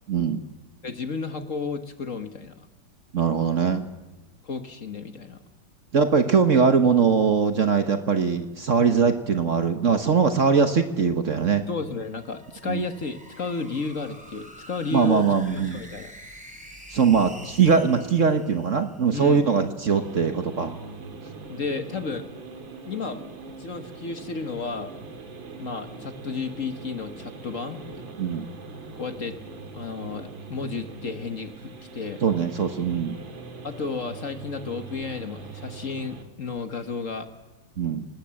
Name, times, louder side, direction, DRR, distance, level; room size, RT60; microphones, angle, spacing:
voice 1, 0.1-0.4 3.1-3.8 5.9-11.6 12.7-12.8 14.9-15.8 16.9-20.7 28.2-28.5 32.2-33.1 37.8-38.1, right 6 dB, 45° right, 8 dB, 1.4 m, -21 dB
voice 2, 0.8-2.7 4.4-5.4 11.7-15.2 15.5-16.1 19.1-19.7 21.5-22.3 22.8-23.2 23.6-24.9 25.6-28.0 28.9-29.4 29.7-32.2 33.6-37.3, left 4 dB, 45° left, 8 dB, 1.6 m, -32 dB
sound 1, 11.9-19.3, equal, 5° right, 3.4 m, -47 dB
sound 2, 19.9-36.2, right 4 dB, 80° right, 2.6 m, -41 dB
26.0 x 19.5 x 7.7 m, 1.1 s
omnidirectional pair, 2.1 m